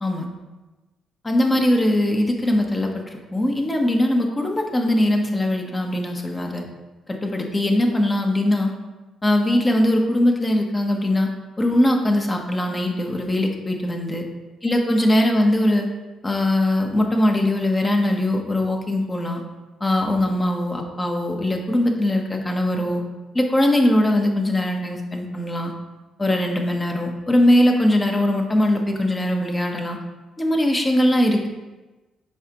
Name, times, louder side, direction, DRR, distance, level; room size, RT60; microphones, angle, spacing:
voice 1, 1.2-6.6 7.1-8.7 9.2-11.3 11.6-14.2 14.6-15.9 16.2-19.4 19.8-23.0 23.3-25.7 26.2-30.0 30.4-31.5, left 1 dB, 20° left, 2 dB, 0.9 m, -21 dB
7.8 x 4.9 x 3.0 m, 1.2 s
cardioid pair, 90°, 0 cm